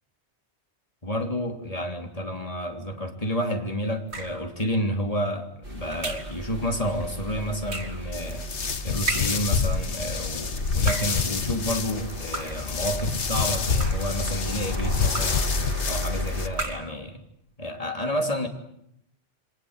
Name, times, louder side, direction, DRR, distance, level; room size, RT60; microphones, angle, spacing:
voice 1, 1.0-8.5 8.8-15.4 15.9-17.2 17.6-18.5, equal, 30° left, 4 dB, 3.5 m, -30 dB
sound 1, 4.1-4.5 6.0-6.4 7.7-8.1 9.1-9.5 10.7-11.3 12.3-12.7 13.6-14.2 15.1-15.5 16.5-17.0, right 2 dB, 70° right, 2.8 m, -34 dB
sound 2, 5.6-16.5, left 1 dB, 55° right, 6.2 m, -34 dB
sound 3, 8.1-16.5, left 5 dB, 90° left, 1.7 m, -28 dB
28.5 x 23.5 x 8.2 m, 0.76 s
omnidirectional pair, 1.1 m